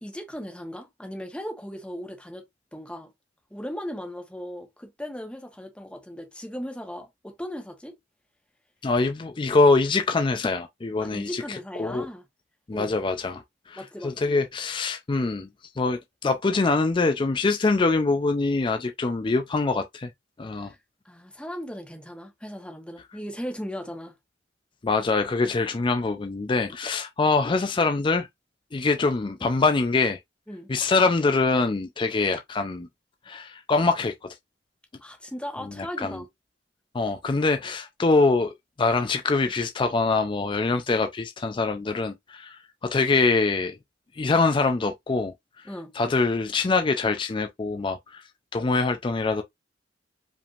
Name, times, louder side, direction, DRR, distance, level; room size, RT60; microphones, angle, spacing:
voice 1, 0.0-2.4 2.7-3.1 3.5-8.0 11.0-12.2 12.7-13.0 13.8-14.4 20.6-20.8 21.0-24.1 30.5-30.7 35.0-36.3 45.6-45.9, equal, 5° left, 1.1 m, -37 dB
voice 2, 8.8-12.1 12.7-15.5 15.8-20.1 20.4-20.7 24.8-28.3 28.7-30.2 30.7-32.9 33.3-34.3 35.6-36.2 36.9-43.8 44.1-45.3 45.9-48.2 48.5-49.4, left 3 dB, 25° left, 0.4 m, -24 dB
5.1 x 3.5 x 2.4 m
head